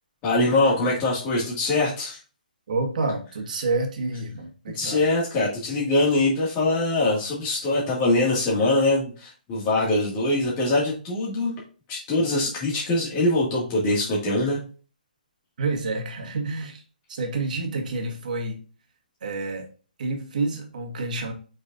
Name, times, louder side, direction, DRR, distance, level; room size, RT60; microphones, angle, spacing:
voice 1, 0.2-2.2 4.7-11.5 11.9-14.6, left 2 dB, 25° left, 2.3 m, -23 dB
voice 2, 2.7-5.0 15.6-16.8 17.1-18.6 19.2-19.7 20.0-21.3, right 3 dB, 60° right, 1.8 m, -28 dB
6.4 x 5.4 x 2.7 m
hypercardioid pair, 145°, 5 cm